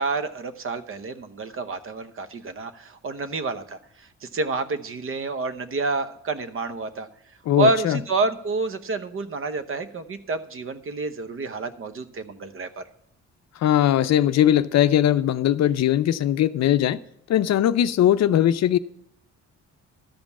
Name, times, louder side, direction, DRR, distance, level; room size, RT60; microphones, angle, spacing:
voice 1, 0.0-3.8 4.2-7.1 7.6-12.8, right 3 dB, 45° right, 0.9 m, -28 dB
voice 2, 7.5-8.0 13.6-17.0 17.3-18.8, left 11 dB, 60° left, 0.5 m, -20 dB
13.0 x 5.2 x 7.1 m
cardioid pair, 90°, 30 cm